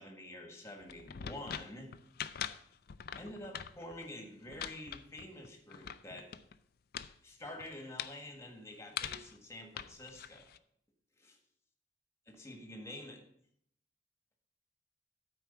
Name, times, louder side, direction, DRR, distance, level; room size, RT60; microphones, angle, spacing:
voice 1, 0.0-1.9 3.2-6.3 7.2-10.5 11.2-11.4 12.3-13.2, left 1 dB, 15° left, 3 dB, 1.6 m, -48 dB
sound 1, 0.8-6.6 6.9-7.1 7.4-8.2 9.0-9.4 9.8-10.6, left 9 dB, 55° left, 0.4 m, -43 dB
9.1 x 4.7 x 6.9 m, 0.69 s
head